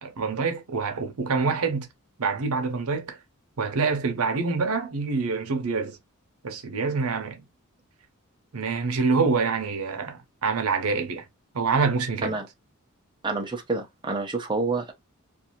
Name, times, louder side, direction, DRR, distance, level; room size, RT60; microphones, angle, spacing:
voice 1, 0.0-1.9 2.2-3.2 3.6-6.0 6.4-7.4 8.5-11.3 11.5-12.4, right 4 dB, 90° right, 0.7 m, -26 dB
voice 2, 13.2-14.9, right 3 dB, 20° right, 0.6 m, -28 dB
2.5 x 2.4 x 2.8 m
head